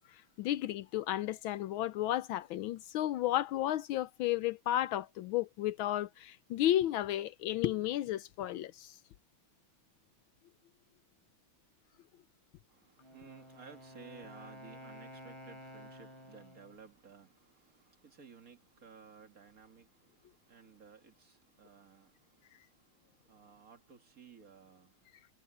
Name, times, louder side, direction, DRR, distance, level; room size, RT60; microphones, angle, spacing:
voice 1, 0.1-9.0, left 13 dB, 75° left, 1.3 m, -33 dB
voice 2, 12.7-25.0, right 5 dB, 40° right, 2.0 m, -56 dB
Wind instrument woodwind instrument, 13.0-16.8, equal, 15° left, 4.0 m, -52 dB
omnidirectional pair, 2.4 m